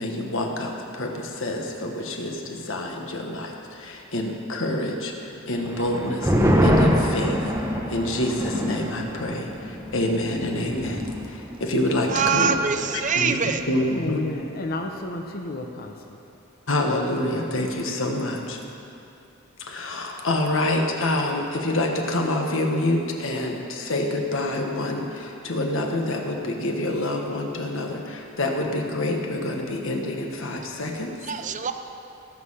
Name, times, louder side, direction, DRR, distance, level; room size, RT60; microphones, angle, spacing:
voice 1, 0.0-7.6 7.9-11.0 11.3-12.6 12.9-14.2 16.7-18.6 19.6-31.1, left 1 dB, 65° left, 1 dB, 1.4 m, -27 dB
sound 1, 5.7-12.6 12.9-13.0 13.4-13.8, equal, 15° right, 1.0 m, -25 dB
voice 2, 12.1-13.6 31.2-31.7, right 6 dB, 35° right, 8 dB, 0.6 m, -24 dB
voice 3, 14.0-16.2, left 2 dB, 45° left, 3 dB, 0.8 m, -32 dB
18.0 x 6.6 x 5.7 m, 2.7 s
head